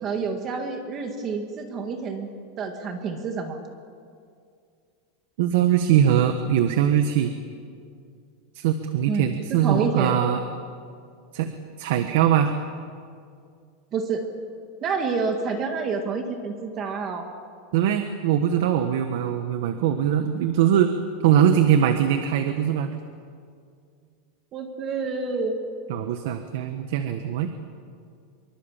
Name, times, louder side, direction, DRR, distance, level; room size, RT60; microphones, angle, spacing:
voice 1, 0.0-2.3 2.6-3.6 9.1-10.2 13.9-14.2 14.8-17.3 24.5-25.6, right 4 dB, 25° right, 5 dB, 1.8 m, -28 dB
voice 2, 5.4-7.3 8.5-10.4 11.3-11.5 11.8-12.5 17.7-20.9 21.2-23.0 25.9-27.5, right 9 dB, 55° right, 7 dB, 1.5 m, -21 dB
26.0 x 23.5 x 7.4 m, 2.3 s
supercardioid pair, 175°, 0 cm